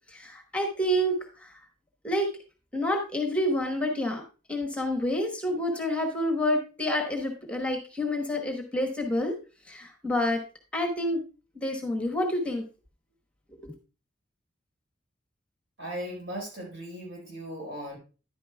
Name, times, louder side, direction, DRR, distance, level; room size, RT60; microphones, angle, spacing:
voice 1, 0.1-1.6 2.0-2.3 2.7-4.2 4.5-9.4 9.6-10.4 10.7-11.2 11.5-12.6 13.6-13.7, left 1 dB, 5° left, 3 dB, 1.1 m, -28 dB
voice 2, 15.8-18.0, right 1 dB, 75° right, -2 dB, 4.5 m, -37 dB
10.5 x 9.2 x 2.3 m, 0.33 s
head